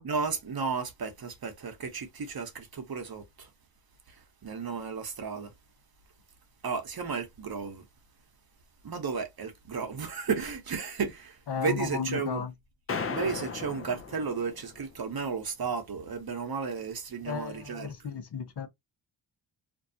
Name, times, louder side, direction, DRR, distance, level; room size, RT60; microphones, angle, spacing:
voice 1, 0.0-3.5 4.4-5.5 6.6-7.8 8.8-12.4 13.1-17.9, right 5 dB, 45° right, 1.0 m, -33 dB
voice 2, 11.5-12.5 17.2-18.7, left 6 dB, 50° left, 0.8 m, -34 dB
sound 1, 12.9-14.9, left 5 dB, 30° left, 0.5 m, -36 dB
2.6 x 2.2 x 2.7 m
cardioid pair, 60°, 49 cm